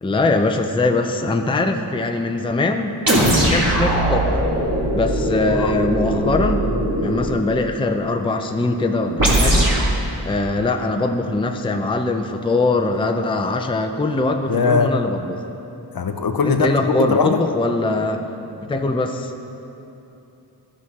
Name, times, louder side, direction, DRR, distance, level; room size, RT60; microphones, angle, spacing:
voice 1, 0.0-3.0 3.4-4.5 4.9-6.6 7.0-9.7 10.2-15.4 16.4-18.2 18.7-19.3, left 2 dB, 10° left, 5 dB, 0.5 m, -22 dB
sound 1, 3.1-7.4 9.2-9.9, right 1 dB, 50° right, 1.8 m, -19 dB
voice 2, 14.5-14.9 15.9-17.4, left 5 dB, 55° left, 7 dB, 0.6 m, -20 dB
13.5 x 6.1 x 4.2 m, 2.9 s
wide cardioid pair, 75°, 44 cm